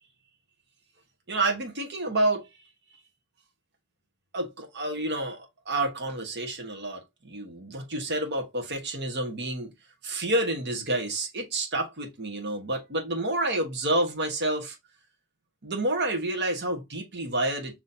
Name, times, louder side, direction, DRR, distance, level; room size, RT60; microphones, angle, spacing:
voice 1, 1.3-2.5 4.3-9.7 10.0-14.8 15.6-17.8, right 2 dB, 50° right, 1.2 m, -29 dB
5.6 x 3.0 x 2.7 m
head